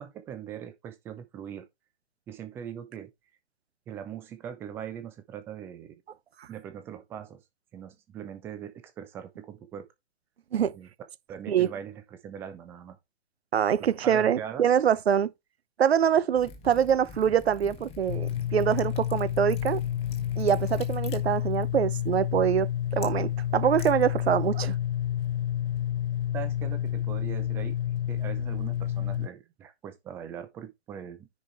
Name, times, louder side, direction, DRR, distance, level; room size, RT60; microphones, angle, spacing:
voice 1, 0.0-1.7 2.3-3.1 3.9-6.0 6.5-7.4 7.7-9.9 10.7-10.9 11.3-13.0 13.8-14.6 26.3-27.8 28.1-31.3, right 9 dB, 5° right, 0.5 m, -41 dB
voice 2, 13.5-15.3 15.8-19.8 20.4-24.8, right 8 dB, 60° right, 0.9 m, -24 dB
Liquid, 16.3-24.6, left 5 dB, 15° left, 1.3 m, -47 dB
sound 1, 18.1-29.3, left 11 dB, 50° left, 0.5 m, -29 dB
10.0 x 5.0 x 3.3 m
figure-of-eight pair, 125°, 36 cm